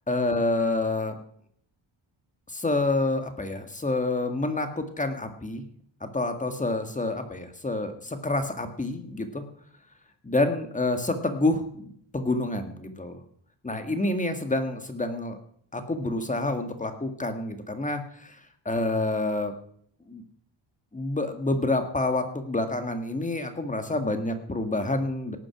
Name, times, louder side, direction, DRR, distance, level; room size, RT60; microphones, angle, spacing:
voice 1, 0.1-1.1 2.5-5.6 6.0-9.4 10.2-13.2 13.6-15.4 15.7-18.4 18.7-19.5 20.1-20.2 20.9-25.4, left 2 dB, 15° left, 7 dB, 1.8 m, -28 dB
18.0 x 9.1 x 5.9 m, 0.63 s
wide cardioid pair, 135°, 49 cm